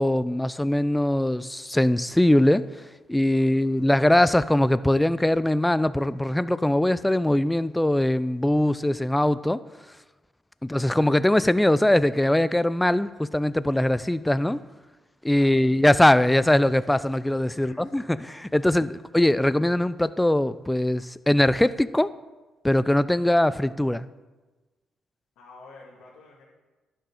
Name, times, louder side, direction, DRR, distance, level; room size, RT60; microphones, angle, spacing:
voice 1, 0.0-2.8 3.1-9.6 10.6-14.6 15.2-22.1 22.6-24.1, left 1 dB, 10° left, 16 dB, 0.4 m, -21 dB
voice 2, 3.3-4.1 15.3-15.7 17.5-18.8 25.4-26.4, left 3 dB, 85° left, -7 dB, 2.3 m, -51 dB
12.0 x 6.1 x 4.9 m, 1.2 s
cardioid pair, 90°, 0 cm